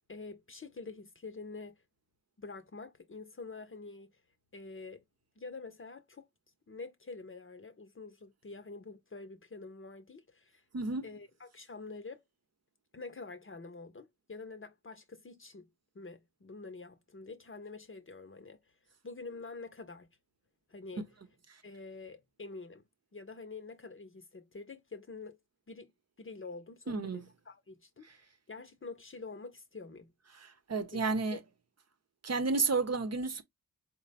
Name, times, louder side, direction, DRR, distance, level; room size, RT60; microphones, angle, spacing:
voice 1, 0.1-1.8 2.4-4.1 4.5-5.0 5.4-6.3 6.7-10.6 11.0-12.2 12.9-15.7 15.9-18.6 19.0-20.1 20.7-21.1 21.6-22.8 23.1-25.4 25.7-25.9 26.2-30.1 30.9-31.1, left 3 dB, 40° left, 0.7 m, -47 dB
voice 2, 10.7-11.1 26.9-27.2 30.4-31.4 32.2-33.4, right 3 dB, 50° right, 0.8 m, -31 dB
4.2 x 2.1 x 4.0 m
wide cardioid pair, 90°, 34 cm